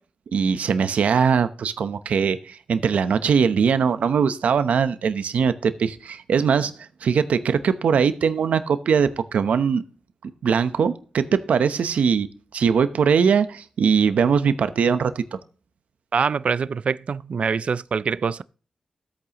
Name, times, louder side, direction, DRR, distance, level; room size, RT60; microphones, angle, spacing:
voice 1, 0.3-6.7 7.0-9.8 10.2-15.2, right 6 dB, 85° right, 0.8 m, -21 dB
voice 2, 16.1-18.4, right 5 dB, 60° right, 0.4 m, -24 dB
14.0 x 8.6 x 3.0 m
cardioid pair, 75°, 2 cm